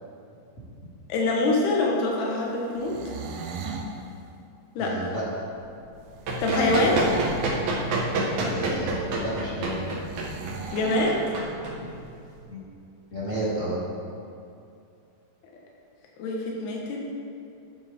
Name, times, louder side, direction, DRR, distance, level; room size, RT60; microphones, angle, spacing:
voice 1, 1.1-3.0 4.7-4.9 6.4-7.0 10.7-11.2 16.2-17.1, left 2 dB, 85° left, -2 dB, 3.3 m, -24 dB
sound 1, 2.7-3.9 6.3-7.6 10.1-11.2, right 4 dB, 75° right, 2.4 m, -36 dB
voice 2, 4.8-5.2 8.4-9.8 12.5-12.6 13.1-13.8, right 1 dB, 25° left, -9 dB, 1.9 m, -31 dB
Run, 5.9-12.3, right 2 dB, 60° right, 2.4 m, -29 dB
11.5 x 9.4 x 3.6 m, 2.5 s
omnidirectional pair, 4.5 m